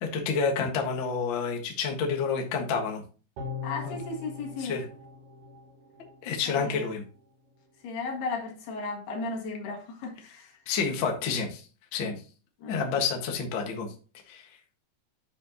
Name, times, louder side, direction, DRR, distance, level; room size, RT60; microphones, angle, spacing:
voice 1, 0.0-3.0 3.8-3.9 4.6-4.8 6.2-7.0 10.7-11.6 11.9-12.1 12.7-13.9 14.3-14.4, left 5 dB, 60° left, 1.2 m, -29 dB
sound 1, 3.4-6.7 7.1-7.2, left 5 dB, 65° right, 3.0 m, -41 dB
voice 2, 3.6-4.8 6.5-6.9 7.8-10.5 12.6-12.9, left 3 dB, 85° left, 3.8 m, -35 dB
9.8 x 6.0 x 2.8 m
omnidirectional pair, 4.5 m